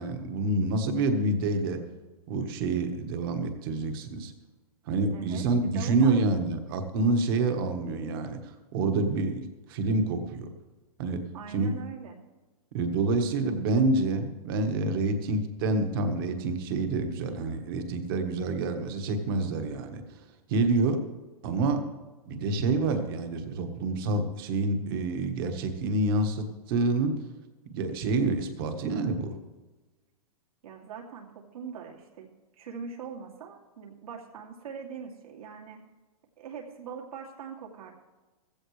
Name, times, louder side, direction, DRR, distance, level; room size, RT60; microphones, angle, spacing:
voice 1, 0.0-1.8 2.3-4.3 4.9-8.4 8.7-10.5 11.0-11.2 11.5-11.7 12.7-20.0 20.5-21.0 21.4-21.8 22.3-27.1 27.7-29.3, right 3 dB, 35° right, 6 dB, 1.5 m, -27 dB
voice 2, 5.1-6.2 11.3-12.2 30.6-32.3 32.6-35.8 36.4-37.9, right 6 dB, 70° right, -1 dB, 2.6 m, -42 dB
15.5 x 15.0 x 3.3 m, 1.2 s
hypercardioid pair, 165°, 19 cm